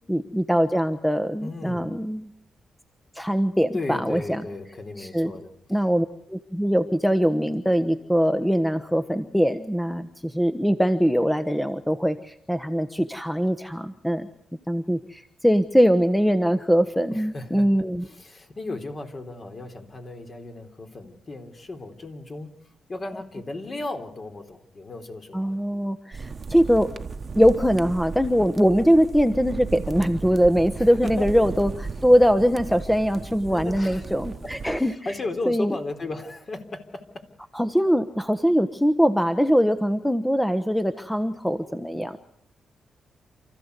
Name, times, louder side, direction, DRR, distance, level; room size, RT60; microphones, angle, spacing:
voice 1, 0.1-2.3 3.1-4.4 5.0-5.3 5.7-14.3 14.7-18.0 25.3-26.9 27.3-34.9 35.5-35.8 37.5-42.2, equal, 5° left, 10 dB, 1.1 m, -22 dB
voice 2, 1.4-1.9 3.7-5.5 17.1-17.7 18.0-22.5 22.9-25.6 30.8-31.3 33.5-34.1 34.4-37.2, left 2 dB, 40° left, 5 dB, 3.9 m, -35 dB
sound 1, 26.1-34.8, right 4 dB, 40° right, 1.2 m, -36 dB
28.5 x 15.0 x 8.3 m, 0.71 s
cardioid pair, 100°, 0 cm